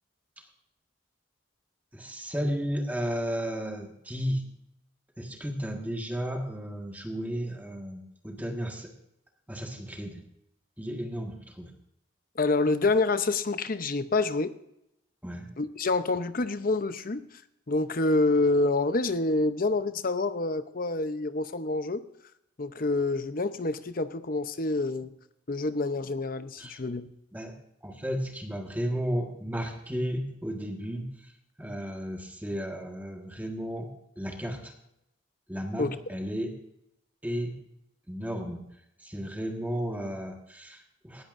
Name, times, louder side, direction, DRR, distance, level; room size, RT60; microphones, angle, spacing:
voice 1, 1.9-4.4 5.2-8.9 9.5-10.2 10.8-11.7 15.2-15.5 26.6-26.8 27.3-27.5 27.8-31.1 31.6-33.9 34.2-34.7 35.5-36.5 37.2-37.6 38.1-38.6 39.0-41.2, equal, 10° right, 1 dB, 1.7 m, -33 dB
voice 2, 12.4-14.5 15.6-17.2 17.7-22.0 22.6-25.1 25.5-27.1 35.8-35.9, left 3 dB, 45° left, 11 dB, 0.8 m, -27 dB
18.5 x 14.5 x 2.6 m, 0.78 s
head